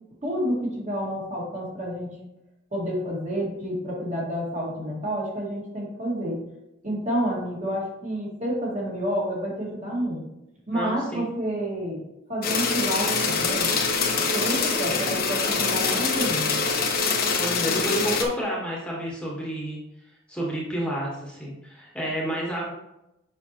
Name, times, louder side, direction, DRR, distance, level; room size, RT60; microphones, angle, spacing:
voice 1, 0.2-2.1 2.7-6.5 6.8-10.3 10.7-12.0 12.3-13.8 14.3-16.6, equal, 35° right, -4 dB, 2.0 m, -29 dB
voice 2, 10.7-11.2 17.4-19.8 20.3-22.7, equal, 5° left, -4 dB, 1.4 m, -30 dB
sound 1, 12.4-18.2, left 4 dB, 50° left, 1.0 m, -24 dB
7.2 x 5.4 x 3.0 m, 0.90 s
head